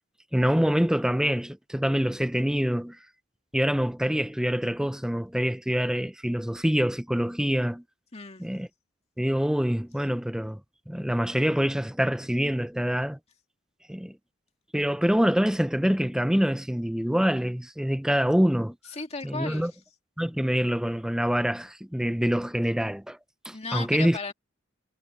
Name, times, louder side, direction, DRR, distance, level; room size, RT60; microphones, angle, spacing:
voice 1, 0.3-3.0 3.5-7.8 8.4-8.7 9.2-10.6 10.9-13.2 13.9-14.2 14.7-18.8 19.2-19.7 20.2-23.2 23.4-24.2, equal, 5° right, 0.6 m, -25 dB
voice 2, 8.1-8.4 18.9-19.8 23.5-24.3, left 4 dB, 35° left, 2.3 m, -35 dB
head